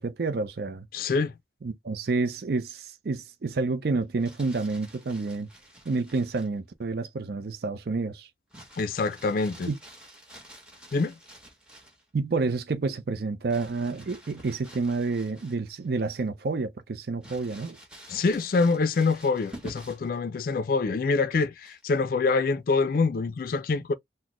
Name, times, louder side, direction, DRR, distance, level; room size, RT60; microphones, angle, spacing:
voice 1, 0.0-0.9 1.6-5.5 5.9-8.3 9.7-9.8 12.1-17.8, right 3 dB, 55° right, 0.4 m, -29 dB
voice 2, 0.9-1.3 8.8-9.7 10.9-11.1 18.1-23.9, left 4 dB, 50° left, 0.4 m, -25 dB
Crumpling crinkling, 4.0-6.6 8.5-12.1 13.5-15.9 16.3-16.4 17.2-20.2 21.6-22.0, right 1 dB, 5° right, 1.2 m, -49 dB
4.1 x 2.1 x 2.9 m
head